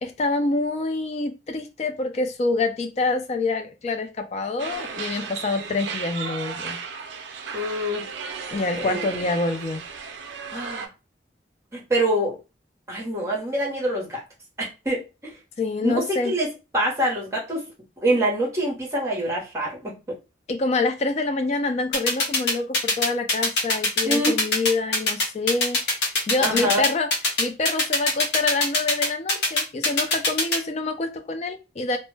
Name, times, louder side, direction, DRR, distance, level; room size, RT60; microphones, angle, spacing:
voice 1, 0.0-6.8 8.5-9.8 15.6-16.3 20.5-25.8 26.3-27.1 27.4-32.0, left 3 dB, 40° left, 6 dB, 0.3 m, -26 dB
sound 1, 4.6-10.9, right 5 dB, 85° right, 0.4 m, -35 dB
voice 2, 7.5-8.1 8.8-9.3 10.5-10.9 11.7-12.4 12.9-14.2 14.6-15.3 15.8-16.5 16.7-17.7 18.0-20.2 24.0-24.4 26.4-26.8, right 1 dB, 15° right, -2 dB, 0.8 m, -25 dB
sound 2, 21.9-30.6, left 2 dB, 70° left, 0.8 m, -21 dB
2.1 x 2.0 x 3.1 m, 0.29 s
head